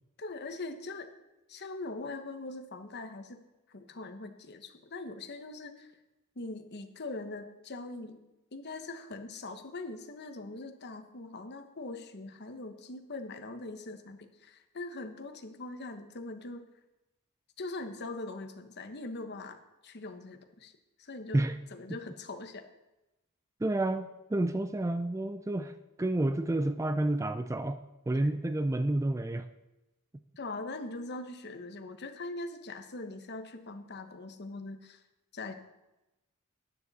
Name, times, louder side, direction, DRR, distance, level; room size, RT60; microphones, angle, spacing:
voice 1, 0.2-1.1 1.5-5.9 6.4-8.2 8.5-16.7 17.6-20.7 21.0-21.4 21.7-22.7 30.4-35.0 35.3-35.5, left 2 dB, 50° left, 8 dB, 1.0 m, -42 dB
voice 2, 23.6-29.5, right 1 dB, 15° right, 10 dB, 0.4 m, -30 dB
13.0 x 9.8 x 4.1 m, 0.98 s
head